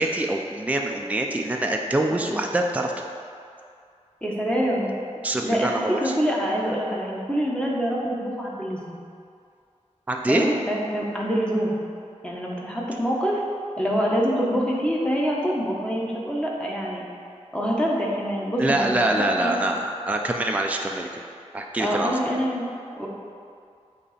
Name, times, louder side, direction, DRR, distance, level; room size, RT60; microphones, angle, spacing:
voice 1, 0.0-2.9 5.2-6.1 10.1-10.5 18.6-21.1 21.5-22.2, right 1 dB, 10° right, 2 dB, 0.4 m, -24 dB
voice 2, 4.2-4.9 5.4-9.0 10.3-11.8 12.2-13.4 13.8-17.0 17.5-19.6 21.8-22.6 22.9-23.1, equal, 10° left, -4 dB, 1.0 m, -25 dB
8.2 x 2.8 x 4.2 m, 2.4 s
wide cardioid pair, 70°, 12 cm